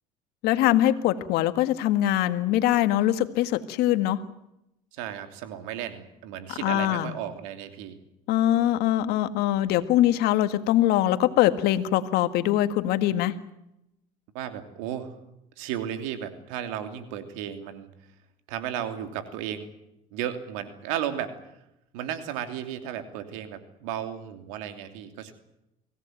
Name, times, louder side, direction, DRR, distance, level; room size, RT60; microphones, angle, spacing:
voice 1, 0.4-4.2 6.6-7.1 8.3-13.4, left 13 dB, 70° left, 11 dB, 1.8 m, -23 dB
voice 2, 4.9-8.0 14.3-15.2 15.6-17.9 18.5-19.7 20.1-21.3 21.9-25.3, right 10 dB, 80° right, 8 dB, 3.0 m, -34 dB
24.5 x 17.5 x 9.3 m, 0.86 s
supercardioid pair, 80°, 17 cm